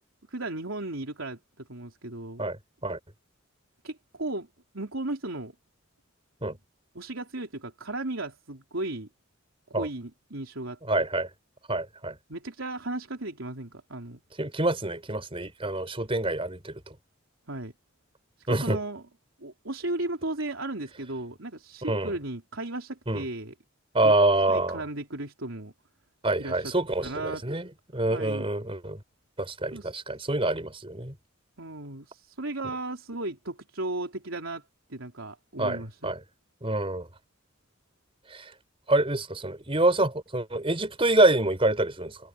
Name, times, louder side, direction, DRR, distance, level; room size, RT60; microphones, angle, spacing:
voice 1, 0.3-2.4 3.8-4.5 4.7-5.5 7.0-9.1 9.8-10.8 12.3-14.2 17.5-17.7 18.4-19.0 19.4-23.5 24.0-24.1 24.5-25.7 26.4-26.7 27.0-27.4 28.1-28.5 29.7-29.9 31.6-34.6 34.9-36.1, right 2 dB, 85° right, 3.6 m, -35 dB
voice 2, 2.4-3.0 6.4-6.6 9.7-9.9 10.9-11.3 11.7-12.2 14.4-16.8 18.5-18.8 21.9-22.1 23.1-23.2 23.9-24.8 26.2-29.0 29.4-31.1 35.6-36.2 36.6-37.1 38.3-38.5 38.9-42.2, right 2 dB, 30° right, 4.5 m, -26 dB
head